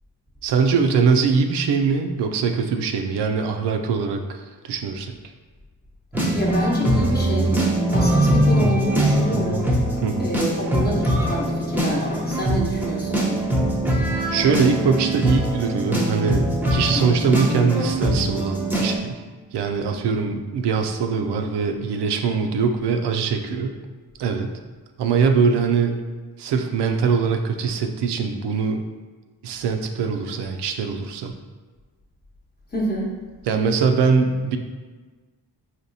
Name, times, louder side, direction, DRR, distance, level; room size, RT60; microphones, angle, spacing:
voice 1, 0.4-5.2 10.0-10.3 14.3-16.4 16.7-19.2 19.5-23.7 24.2-24.5 25.0-26.0 26.4-28.8 29.4-31.4 33.5-34.6, right 5 dB, 75° right, 5 dB, 0.5 m, -22 dB
sound 1, 6.1-19.0, right 1 dB, 5° right, 0.7 m, -22 dB
voice 2, 6.3-7.6 7.9-9.7 10.2-13.2 32.7-33.1, right 1 dB, 20° left, -2 dB, 0.9 m, -27 dB
4.2 x 2.9 x 2.6 m, 1.3 s
cardioid pair, 60°, 42 cm